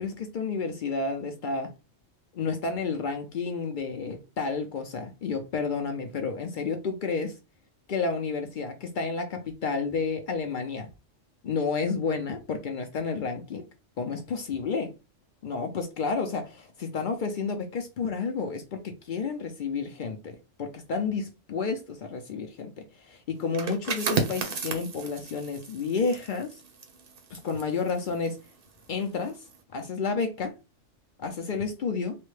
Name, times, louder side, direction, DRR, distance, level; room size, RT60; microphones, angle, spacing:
voice 1, 0.0-1.7 2.3-7.4 7.9-10.9 11.4-13.6 14.0-14.9 15.4-26.5 27.3-28.4 28.9-29.4 29.7-30.5 31.2-32.2, left 4 dB, 60° left, 0.5 m, -31 dB
sound 1, 23.4-28.9 29.3-29.6, right 5 dB, 55° right, 0.7 m, -34 dB
3.1 x 2.1 x 3.1 m
omnidirectional pair, 1.3 m